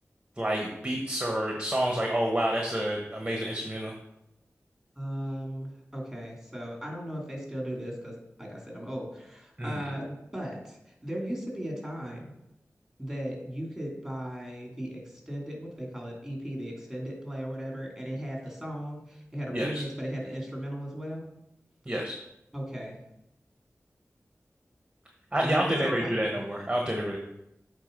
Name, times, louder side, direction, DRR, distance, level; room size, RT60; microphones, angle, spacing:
voice 1, 0.4-3.9 9.6-9.8 19.5-19.8 21.9-22.2 25.3-27.2, right 1 dB, 15° right, 0 dB, 1.2 m, -29 dB
voice 2, 5.0-12.3 13.0-21.3 22.5-23.0 25.4-26.4, equal, ahead, -1 dB, 2.9 m, -36 dB
8.3 x 3.8 x 5.3 m, 0.85 s
cardioid pair, 40°, 5 cm